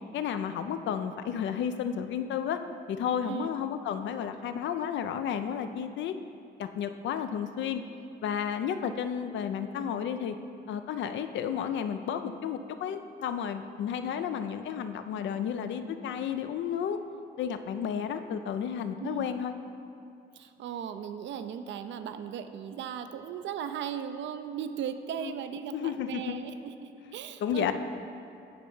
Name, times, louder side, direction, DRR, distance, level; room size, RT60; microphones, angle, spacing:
voice 1, 0.1-2.6 2.9-6.1 6.6-7.8 8.2-10.4 10.7-17.0 17.4-19.5 25.2-25.3 25.7-26.4 27.0-27.2 27.4-27.7, left 8 dB, 70° left, 9 dB, 0.5 m, -32 dB
voice 2, 3.2-3.5 19.0-19.3 20.4-27.7, right 8 dB, 70° right, 9 dB, 0.5 m, -37 dB
9.3 x 3.3 x 5.5 m, 2.5 s
cardioid pair, 90°, 20 cm